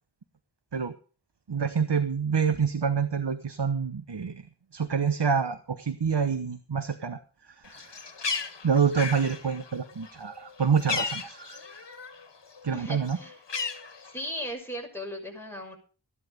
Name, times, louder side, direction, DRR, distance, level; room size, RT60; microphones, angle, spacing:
voice 1, 1.5-4.4 4.7-7.2 7.7-7.9 8.6-11.6 12.6-13.2, right 6 dB, 75° right, 10 dB, 1.1 m, -27 dB
Bird, 7.6-12.3 12.6-14.5, left 5 dB, 85° left, 1.4 m, -35 dB
voice 2, 12.7-13.4 14.1-15.8, equal, 5° left, 1 dB, 6.1 m, -37 dB
15.0 x 11.0 x 5.2 m, 0.38 s
wide cardioid pair, 45°, 41 cm